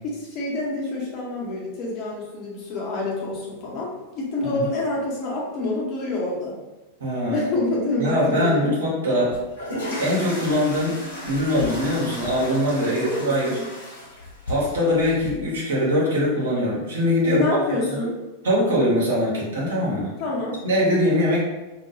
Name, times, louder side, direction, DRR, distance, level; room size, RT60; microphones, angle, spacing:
voice 1, 0.0-6.6 7.3-8.7 12.8-13.7 17.2-18.2 20.2-20.6, left 2 dB, 40° left, -4 dB, 0.8 m, -27 dB
voice 2, 7.0-7.4 8.0-9.4 10.0-13.6 14.5-17.4 17.9-18.0 18.4-20.1 20.6-21.4, left 1 dB, 65° right, -5 dB, 1.0 m, -22 dB
sound 1, 9.3-15.3, left 1 dB, 70° left, 0.8 m, -34 dB
2.4 x 2.2 x 2.9 m, 1.1 s
figure-of-eight pair, 90°, 0 cm